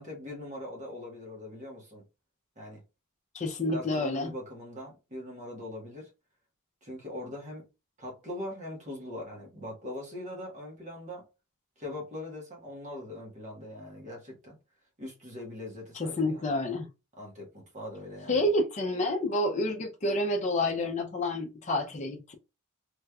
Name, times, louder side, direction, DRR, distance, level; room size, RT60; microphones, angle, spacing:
voice 1, 0.0-2.0 2.6-2.8 3.7-6.1 6.8-7.7 8.0-11.3 11.8-14.6 15.0-16.5 17.2-18.4, left 1 dB, 35° right, 1.2 m, -41 dB
voice 2, 3.3-4.3 15.9-16.9 18.3-22.3, left 1 dB, 35° left, 0.6 m, -29 dB
3.2 x 3.0 x 2.3 m
head